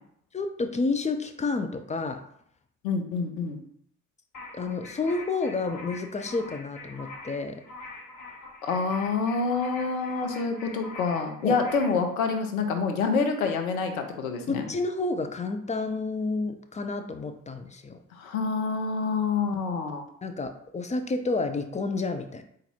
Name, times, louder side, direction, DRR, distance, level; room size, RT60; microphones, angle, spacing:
voice 1, 0.3-2.2 4.5-7.6 11.4-11.6 14.5-18.0 20.2-22.4, left 3 dB, 15° left, 7 dB, 0.5 m, -30 dB
voice 2, 2.8-3.6 8.6-14.6 18.1-20.0, left 4 dB, 85° left, 5 dB, 0.7 m, -27 dB
sound 1, 4.3-12.0, left 3 dB, 45° left, 1.3 m, -44 dB
4.0 x 2.5 x 4.3 m, 0.68 s
hypercardioid pair, 55°, 41 cm